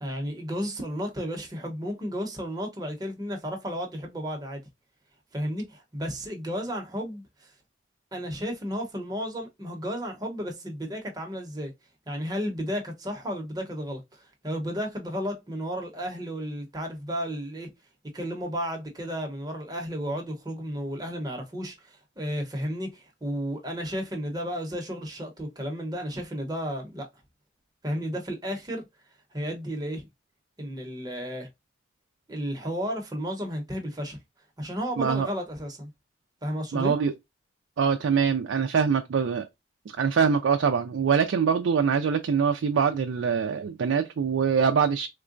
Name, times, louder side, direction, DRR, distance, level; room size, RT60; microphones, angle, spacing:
voice 1, 0.0-4.6 5.3-7.5 8.1-11.7 12.1-17.7 18.1-27.1 27.8-28.9 29.3-30.1 30.6-31.5 32.3-34.2 34.6-35.9 36.4-36.9, equal, 20° right, 0.8 m, -33 dB
voice 2, 35.0-35.3 36.7-37.1 37.8-39.5 40.0-45.1, right 6 dB, 80° right, 0.4 m, -24 dB
3.7 x 2.1 x 2.5 m
head